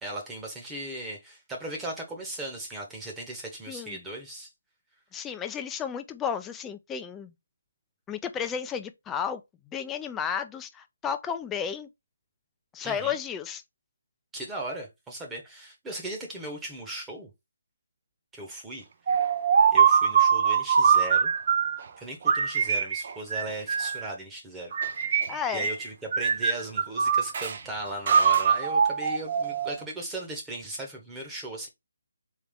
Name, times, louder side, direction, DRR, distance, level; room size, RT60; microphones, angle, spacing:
voice 1, 0.0-4.5 12.8-13.2 14.3-17.3 18.3-18.8 19.7-21.3 22.0-24.7 25.5-31.7, right 1 dB, 10° right, 1.1 m, -37 dB
voice 2, 3.7-4.0 5.1-7.3 8.1-9.4 9.7-11.9 12.7-13.6 25.3-25.7, left 7 dB, 10° left, 0.4 m, -32 dB
sound 1, 19.1-21.8 22.3-24.1 24.7-25.8 26.1-27.6 28.1-29.8, right 7 dB, 45° right, 0.6 m, -23 dB
3.6 x 3.3 x 3.6 m
figure-of-eight pair, 155°, 0 cm